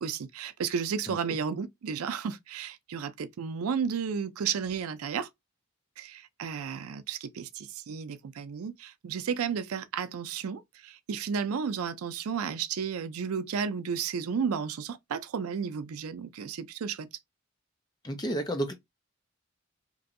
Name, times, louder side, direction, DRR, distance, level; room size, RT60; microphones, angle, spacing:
voice 1, 0.0-5.3 6.0-17.1, right 6 dB, 90° right, 0.4 m, -33 dB
voice 2, 18.0-18.7, right 1 dB, 20° left, 0.5 m, -31 dB
3.0 x 2.6 x 2.5 m
head